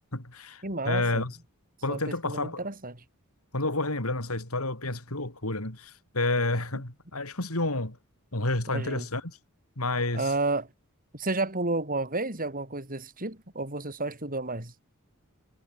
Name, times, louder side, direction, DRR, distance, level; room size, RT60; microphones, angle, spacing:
voice 1, 0.1-1.4 1.8-2.6 3.5-8.0 8.3-9.4 9.8-10.3, left 2 dB, 90° left, 5.4 m, -30 dB
voice 2, 0.6-1.2 1.9-3.0 8.7-9.1 10.1-10.7 11.1-14.7, right 2 dB, 40° right, 5.6 m, -31 dB
head